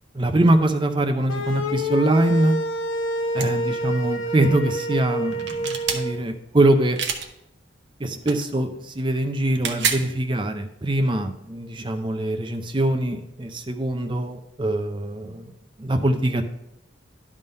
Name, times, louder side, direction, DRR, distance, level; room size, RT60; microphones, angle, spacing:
voice 1, 0.1-2.6 3.3-7.0 8.0-15.5 15.8-16.4, right 1 dB, 25° right, 7 dB, 0.5 m, -23 dB
sound 1, 1.3-6.1, equal, 85° left, 0.8 m, -27 dB
sound 2, 3.4-3.5 5.3-6.0 7.0-7.3 8.2-8.4 9.5-10.0, right 6 dB, 60° right, 0.8 m, -26 dB
11.0 x 3.7 x 5.3 m, 0.81 s
head